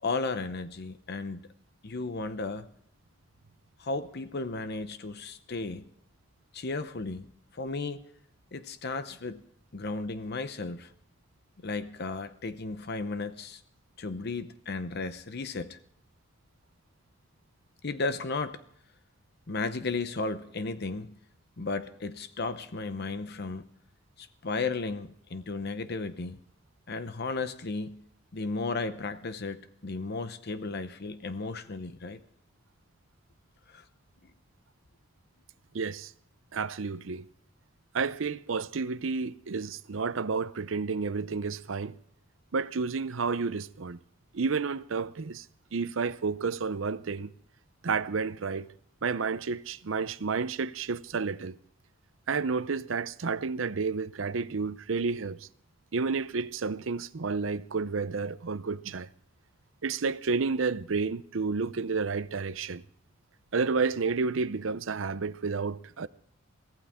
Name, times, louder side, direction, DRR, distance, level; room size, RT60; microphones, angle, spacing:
voice 1, 0.0-1.4 1.8-2.7 3.8-5.8 6.5-7.3 7.5-8.0 8.5-9.4 9.7-10.9 11.6-13.6 14.0-15.8 17.8-18.6 19.5-21.1 21.6-23.6 24.2-26.4 26.9-28.0 28.3-32.2 33.7-33.8, left 3 dB, 55° left, 0.8 m, -34 dB
voice 2, 35.7-36.1 36.5-37.3 37.9-42.0 42.5-44.0 44.3-45.5 45.7-47.3 47.8-48.7 49.0-51.6 52.3-55.5 55.9-59.1 59.8-62.8 63.5-66.1, right 4 dB, 75° right, 0.6 m, -31 dB
23.5 x 15.0 x 3.6 m
head